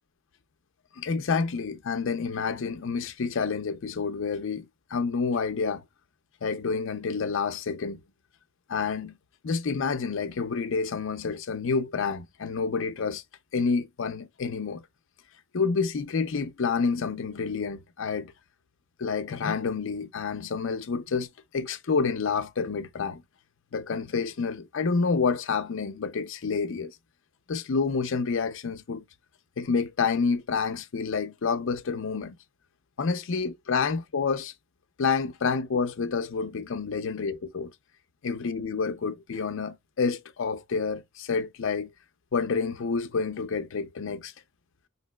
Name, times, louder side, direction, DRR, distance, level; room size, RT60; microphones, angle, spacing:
voice 1, 1.0-5.8 6.4-8.0 8.7-9.2 9.4-13.2 13.5-14.8 15.5-18.3 19.0-21.3 21.5-23.2 23.7-27.0 27.5-29.1 29.6-32.4 33.0-34.5 35.0-37.7 38.2-41.9 42.3-44.3, left 5 dB, 65° left, 0.5 m, -28 dB
3.9 x 2.8 x 2.2 m
head